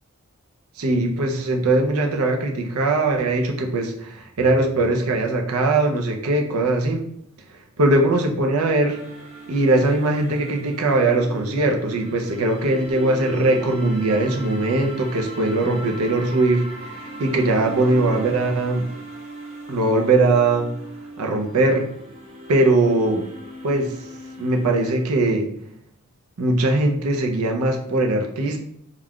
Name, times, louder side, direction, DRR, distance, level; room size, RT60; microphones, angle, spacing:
voice 1, 0.8-7.1 7.8-9.0 9.5-18.9 19.7-20.7 21.2-21.9 22.5-23.2 23.6-23.9 24.4-25.5 26.4-28.6, right 2 dB, 85° right, 3 dB, 0.5 m, -20 dB
sound 1, 8.9-25.0, right 1 dB, 30° right, 0.5 m, -38 dB
2.4 x 2.2 x 3.5 m, 0.71 s
head